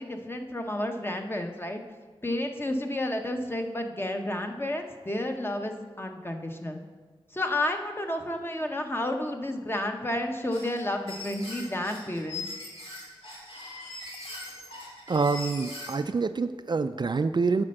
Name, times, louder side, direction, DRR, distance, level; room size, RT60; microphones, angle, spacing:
voice 1, 0.0-1.8 2.2-6.8 7.3-12.4, left 1 dB, 25° left, 4 dB, 0.9 m, -31 dB
sound 1, 10.5-16.0, left 2 dB, 70° left, 2.2 m, -40 dB
voice 2, 15.1-17.6, right 4 dB, 50° right, 10 dB, 0.3 m, -26 dB
9.9 x 4.3 x 6.5 m, 1.4 s
wide cardioid pair, 65°, 10 cm